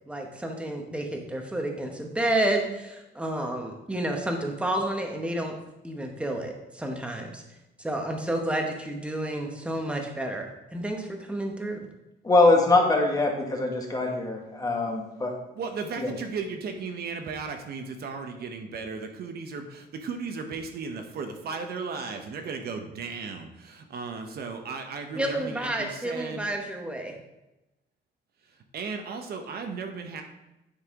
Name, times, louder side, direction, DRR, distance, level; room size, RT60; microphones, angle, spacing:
voice 1, 0.1-5.6 5.8-7.4 7.8-11.9 25.1-27.1, right 1 dB, 5° right, 2 dB, 1.0 m, -30 dB
voice 2, 12.2-15.3 16.0-16.1, left 2 dB, 20° left, 1 dB, 1.1 m, -23 dB
voice 3, 15.6-26.4 28.7-30.2, right 5 dB, 60° right, 5 dB, 0.9 m, -35 dB
9.7 x 5.6 x 3.7 m, 0.95 s
cardioid pair, 175°, 19 cm